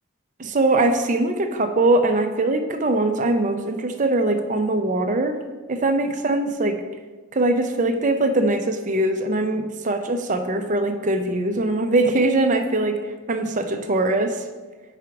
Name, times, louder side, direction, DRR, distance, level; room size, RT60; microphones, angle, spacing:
voice 1, 0.4-5.4 5.7-6.8 7.3-14.4, right 2 dB, 35° right, 6 dB, 0.5 m, -22 dB
4.9 x 4.7 x 5.8 m, 1.3 s
head